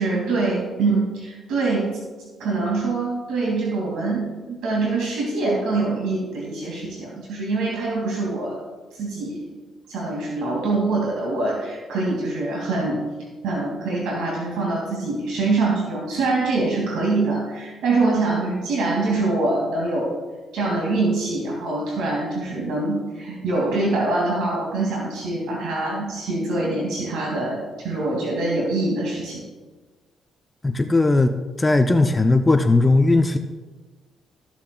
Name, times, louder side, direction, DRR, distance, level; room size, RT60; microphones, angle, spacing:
voice 1, 0.0-1.9 2.4-8.6 9.0-9.4 9.9-13.0 13.4-20.1 20.5-29.5, right 3 dB, 90° right, -3 dB, 2.2 m, -24 dB
voice 2, 30.6-33.4, left 2 dB, 20° left, 6 dB, 0.5 m, -18 dB
14.5 x 7.2 x 2.3 m, 1.3 s
cardioid pair, 90°, 0 cm